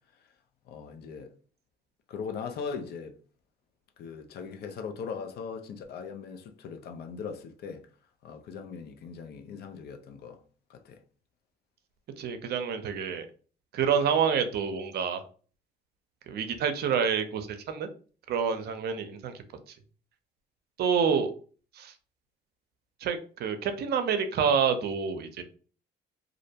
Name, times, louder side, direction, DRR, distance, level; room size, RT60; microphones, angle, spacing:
voice 1, 0.7-1.3 2.1-3.2 4.0-7.8 8.2-10.4 10.7-11.0, left 6 dB, 60° left, 0.5 m, -39 dB
voice 2, 12.2-13.3 13.7-15.2 16.3-17.9 18.3-19.3 20.8-21.3 21.8-21.9 23.0-25.4, right 6 dB, 60° right, 0.5 m, -28 dB
2.5 x 2.1 x 2.7 m
supercardioid pair, 85°, 19 cm